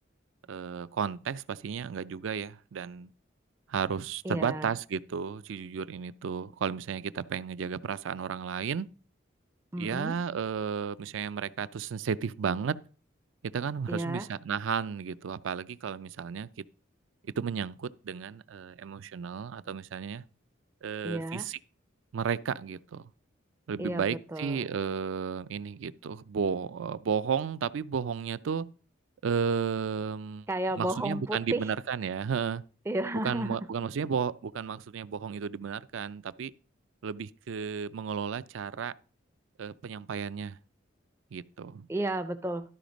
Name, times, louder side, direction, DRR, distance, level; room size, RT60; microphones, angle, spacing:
voice 1, 0.5-3.1 3.7-8.9 9.8-12.8 13.4-16.5 17.2-20.2 20.8-21.6 22.1-23.1 23.7-28.7 29.2-30.5 30.8-32.6 33.2-36.5 37.0-38.9 39.6-40.6 41.3-41.9, right 6 dB, 75° right, 0.4 m, -33 dB
voice 2, 4.2-4.7 9.7-10.2 13.9-14.3 21.0-21.5 23.8-24.7 30.5-31.7 32.9-33.6 41.9-42.6, right 1 dB, 15° right, 0.4 m, -32 dB
12.0 x 5.0 x 5.1 m
head